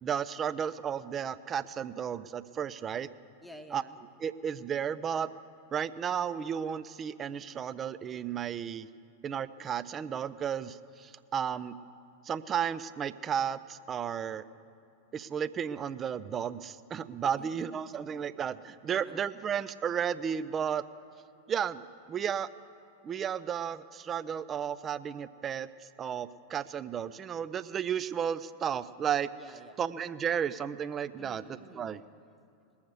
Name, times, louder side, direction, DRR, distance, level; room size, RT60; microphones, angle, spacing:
voice 1, 0.0-3.1 3.7-3.8 4.2-5.3 5.7-8.9 9.2-11.7 12.2-14.4 15.1-20.8 21.5-21.8 22.1-22.5 23.0-25.7 26.0-29.3 29.8-31.4 31.7-32.0, right 8 dB, 25° right, 15 dB, 0.4 m, -33 dB
voice 2, 3.4-4.0 17.2-18.0 18.9-19.3 29.3-29.8 31.2-31.9, equal, ahead, 6 dB, 0.9 m, -51 dB
20.0 x 7.1 x 7.9 m, 2.6 s
figure-of-eight pair, 90°, 0 cm